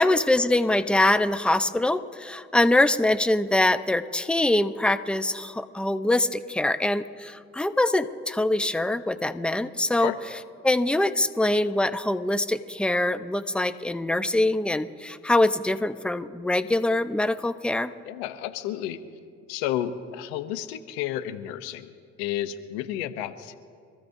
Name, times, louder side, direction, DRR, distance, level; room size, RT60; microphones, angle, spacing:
voice 1, 0.0-10.1 10.6-17.9, left 1 dB, 5° left, 12 dB, 0.7 m, -23 dB
voice 2, 18.0-19.0 19.5-23.5, left 12 dB, 90° left, 12 dB, 0.8 m, -31 dB
26.0 x 14.5 x 2.7 m, 2.3 s
hypercardioid pair, 60°, 31 cm